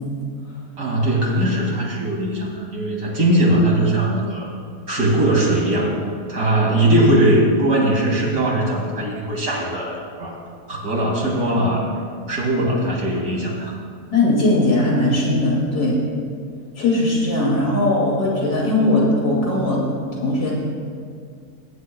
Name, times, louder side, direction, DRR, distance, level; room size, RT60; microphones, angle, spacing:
voice 1, 0.8-4.5 4.9-5.9 6.3-10.4 10.7-11.8 12.3-13.7, right 1 dB, 75° right, -3 dB, 2.8 m, -20 dB
voice 2, 14.1-16.0 16.8-19.9 20.2-20.5, left 2 dB, 80° left, -5 dB, 3.0 m, -19 dB
21.5 x 10.5 x 2.3 m, 2.1 s
omnidirectional pair, 1.6 m